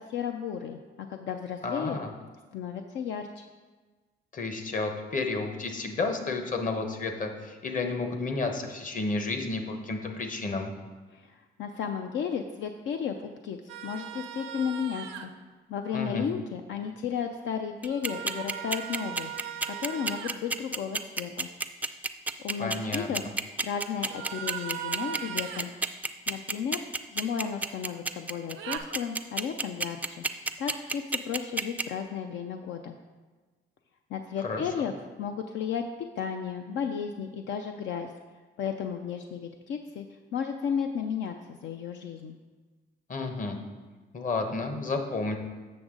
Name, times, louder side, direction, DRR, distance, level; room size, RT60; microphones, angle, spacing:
voice 1, 0.0-2.0 2.5-3.4 11.1-13.6 13.8-15.3 15.7-19.3 19.7-21.5 22.4-23.2 23.6-25.7 26.3-26.8 27.1-30.2 30.6-32.9 34.1-35.9 36.2-38.1 38.6-40.1 40.3-42.4, left 7 dB, 70° left, 5 dB, 0.5 m, -34 dB
voice 2, 1.6-2.1 4.3-10.7 15.9-16.3 22.6-23.1 34.4-34.6 43.1-43.6 44.1-45.4, left 3 dB, 40° left, 5 dB, 1.0 m, -31 dB
sound 1, 13.7-15.3 17.8-20.3 24.1-25.7 28.5-28.8, right 10 dB, 85° right, 0.6 m, -38 dB
sound 2, 17.8-31.8, right 3 dB, 10° right, 0.4 m, -29 dB
7.7 x 6.2 x 3.7 m, 1.3 s
cardioid pair, 90°, 20 cm